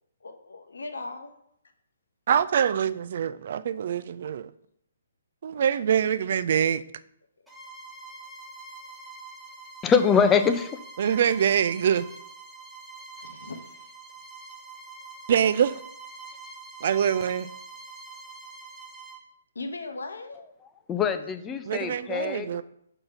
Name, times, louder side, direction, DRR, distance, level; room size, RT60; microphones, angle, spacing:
voice 1, 0.2-1.3 13.2-13.8 19.5-20.5, left 3 dB, 65° left, 0.9 m, -38 dB
voice 2, 2.3-4.5 5.4-6.8 11.0-12.1 15.3-15.8 16.8-17.5 21.7-22.6, right 8 dB, 45° right, 0.4 m, -24 dB
Bowed string instrument, 7.5-19.3, right 3 dB, ahead, 0.8 m, -45 dB
voice 3, 9.8-10.7 20.9-22.6, left 6 dB, 15° left, 0.5 m, -23 dB
6.3 x 3.8 x 5.8 m
figure-of-eight pair, 130°, 0 cm